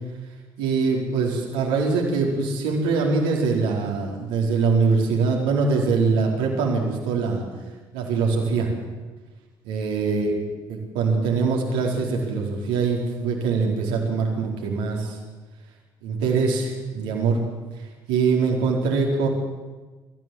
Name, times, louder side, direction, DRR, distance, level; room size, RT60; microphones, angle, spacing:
voice 1, 0.6-7.4 7.9-8.7 9.6-10.4 10.7-15.2 16.0-17.4 18.1-19.3, right 4 dB, 75° right, -1 dB, 4.5 m, -23 dB
25.5 x 14.5 x 7.9 m, 1.3 s
hypercardioid pair, 50°, 12 cm